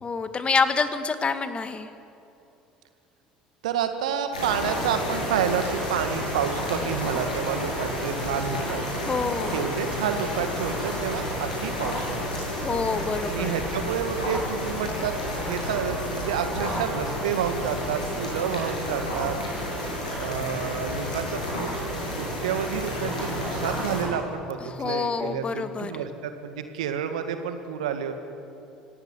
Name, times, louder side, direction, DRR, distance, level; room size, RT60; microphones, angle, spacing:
voice 1, 0.0-1.9 9.0-9.6 12.6-13.6 24.7-25.9, left 5 dB, 30° left, 11 dB, 1.9 m, -27 dB
voice 2, 3.6-8.8 9.5-12.5 13.3-15.1 15.5-19.4 20.2-21.7 22.1-28.1, right 8 dB, 75° right, 8 dB, 2.0 m, -29 dB
sound 1, 4.3-24.0, equal, 85° left, 7.3 m, -30 dB
26.0 x 17.0 x 9.7 m, 2.8 s
figure-of-eight pair, 60°, 4 cm